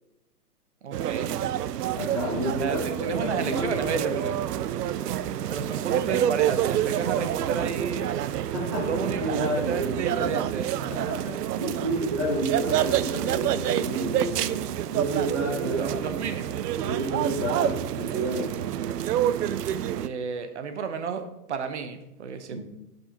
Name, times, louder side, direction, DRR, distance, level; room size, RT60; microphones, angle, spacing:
voice 1, 0.8-1.3 2.6-4.3 5.5-8.1 8.8-10.7 15.8-16.6 20.0-22.6, right 6 dB, 45° right, 8 dB, 0.8 m, -32 dB
sound 1, 0.9-20.1, right 11 dB, 80° right, 0.5 m, -28 dB
voice 2, 1.9-4.4 8.5-10.4 10.9-14.6 14.9-16.1 16.8-18.6 22.5-22.6, right 2 dB, 20° right, -4 dB, 0.9 m, -30 dB
10.0 x 5.4 x 2.9 m, 0.91 s
hypercardioid pair, 175°, 47 cm